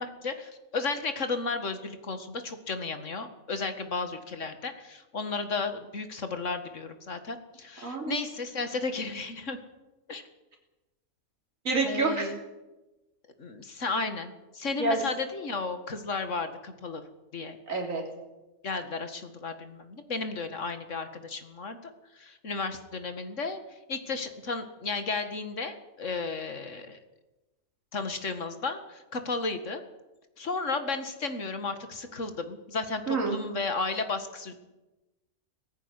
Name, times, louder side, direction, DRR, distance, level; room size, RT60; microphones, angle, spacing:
voice 1, 0.0-9.6 10.1-10.2 11.9-12.4 13.4-17.0 17.3-17.6 18.6-27.0 27.9-29.8 30.4-34.5, left 4 dB, 55° left, 8 dB, 2.2 m, -34 dB
voice 2, 7.8-8.2 11.6-12.3 14.8-15.0 17.7-18.0 33.1-33.4, right 3 dB, 60° right, 0 dB, 3.8 m, -27 dB
18.0 x 15.0 x 9.8 m, 1.1 s
omnidirectional pair, 1.5 m